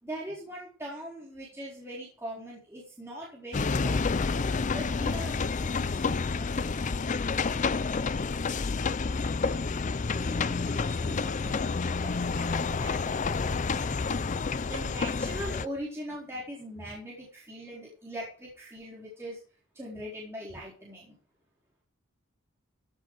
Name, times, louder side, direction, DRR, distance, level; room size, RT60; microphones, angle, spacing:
voice 1, 0.0-4.2 4.7-7.1 7.4-7.8 9.4-9.6 10.1-13.9 14.7-19.4 19.7-21.2, equal, 15° right, -5 dB, 4.3 m, -42 dB
sound 1, 3.5-15.7, left 4 dB, 35° left, 0.5 m, -29 dB
15.5 x 8.1 x 4.9 m, 0.39 s
head